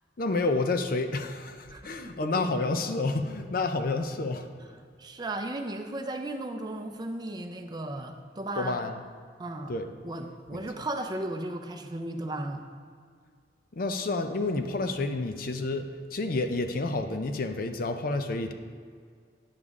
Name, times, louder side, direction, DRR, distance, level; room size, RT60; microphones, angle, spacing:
voice 1, 0.2-4.5 8.6-9.0 9.7-9.9 13.7-18.5, left 3 dB, 55° left, 7 dB, 0.6 m, -29 dB
voice 2, 1.7-2.3 5.0-8.8 9.4-9.7 10.0-12.7, right 1 dB, 25° right, 5 dB, 0.5 m, -35 dB
9.6 x 7.0 x 3.6 m, 2.1 s
head